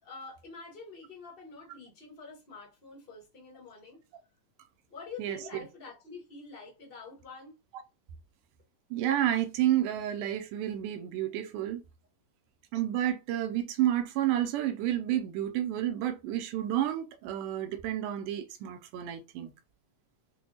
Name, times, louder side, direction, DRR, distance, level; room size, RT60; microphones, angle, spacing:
voice 1, 0.0-4.0 4.9-7.5, left 4 dB, 60° left, 0.6 m, -47 dB
voice 2, 8.9-11.8 12.7-19.5, right 12 dB, 80° right, 2.1 m, -30 dB
6.1 x 2.2 x 2.8 m
omnidirectional pair, 3.8 m